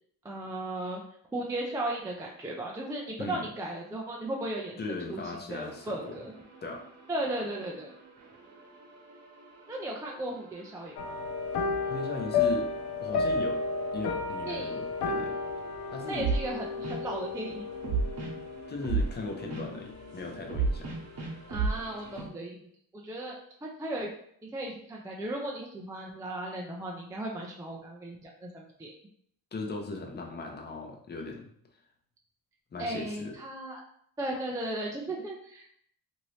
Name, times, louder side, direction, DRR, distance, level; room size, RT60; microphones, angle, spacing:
voice 1, 0.2-1.0 1.3-5.2 5.5-6.3 7.1-7.9 9.7-11.0 14.5-14.8 16.1-17.7 21.5-22.6 22.9-23.3 23.6-24.1 24.5-29.0 32.8-33.8 34.2-35.7, right 1 dB, 10° right, -1 dB, 0.3 m, -36 dB
voice 2, 4.8-6.2 6.6-6.8 11.9-12.7 13.0-13.6 13.9-15.4 15.9-16.3 18.7-20.9 29.5-31.5 32.7-33.4, left 3 dB, 25° left, 2 dB, 0.6 m, -38 dB
sound 1, 5.6-22.2, right 4 dB, 40° right, 1.0 m, -37 dB
sound 2, 11.0-20.5 20.8-21.2 21.6-21.7, left 4 dB, 85° left, 0.6 m, -33 dB
2.9 x 2.7 x 3.1 m, 0.67 s
cardioid pair, 115°, 38 cm